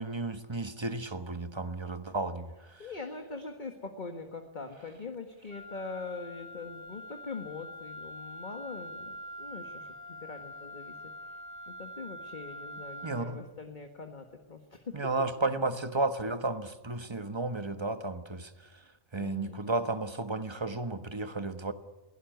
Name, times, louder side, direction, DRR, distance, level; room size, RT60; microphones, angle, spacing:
voice 1, 0.0-2.9 13.0-13.4 14.9-18.8 19.1-21.7, right 2 dB, 20° right, 10 dB, 1.3 m, -33 dB
voice 2, 2.8-9.9 10.2-11.0 11.2-11.4 11.7-14.9 19.2-19.6, left 4 dB, 35° left, 5 dB, 1.8 m, -42 dB
Wind instrument woodwind instrument, 5.5-13.3, equal, 65° left, 3.5 m, -45 dB
22.5 x 17.0 x 9.3 m, 1.1 s
omnidirectional pair, 1.4 m